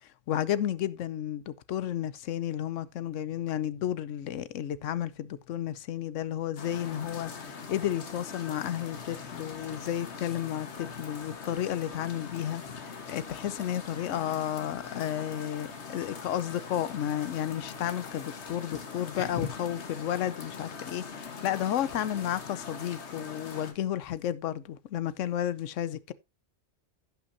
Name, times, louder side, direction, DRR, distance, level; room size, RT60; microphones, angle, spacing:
voice 1, 0.3-26.1, left 11 dB, 85° left, 1.0 m, -32 dB
sound 1, 6.6-23.7, left 5 dB, 65° left, 1.6 m, -41 dB
16.5 x 5.8 x 2.6 m
omnidirectional pair, 1.2 m